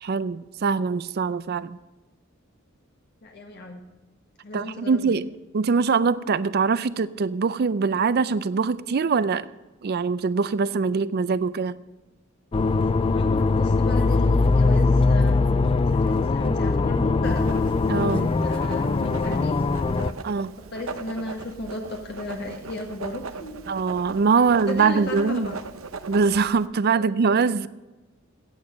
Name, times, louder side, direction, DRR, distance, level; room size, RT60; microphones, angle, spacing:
voice 1, 0.0-1.8 4.5-5.3 5.5-9.5 9.8-11.8 17.9-18.3 20.2-20.5 23.7-25.5 26.1-27.7, right 5 dB, 50° right, 16 dB, 0.4 m, -23 dB
voice 2, 3.2-3.8 4.4-5.1 12.9-15.6 15.9-17.6 18.1-19.6 20.7-23.7 24.7-25.6 26.9-27.1, left 1 dB, 55° left, 1 dB, 1.4 m, -34 dB
sound 1, 12.5-20.1, left 3 dB, 25° left, 0.4 m, -21 dB
Writing, 17.2-26.7, right 4 dB, 80° right, 0.8 m, -39 dB
15.5 x 8.8 x 5.1 m, 1.1 s
head